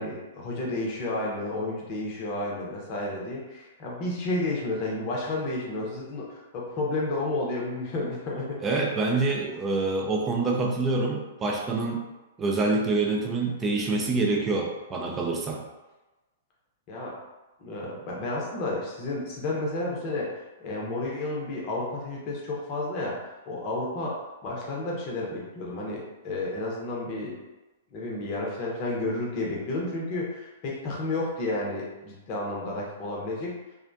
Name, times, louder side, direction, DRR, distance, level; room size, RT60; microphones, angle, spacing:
voice 1, 0.0-8.6 16.9-17.2 17.6-23.2 23.5-27.4 27.9-33.5, left 2 dB, 35° left, -3 dB, 0.7 m, -31 dB
voice 2, 8.6-12.1 12.4-15.6, right 3 dB, 20° right, 0 dB, 0.4 m, -26 dB
2.4 x 2.1 x 2.5 m, 1.1 s
figure-of-eight pair, 110°, 0 cm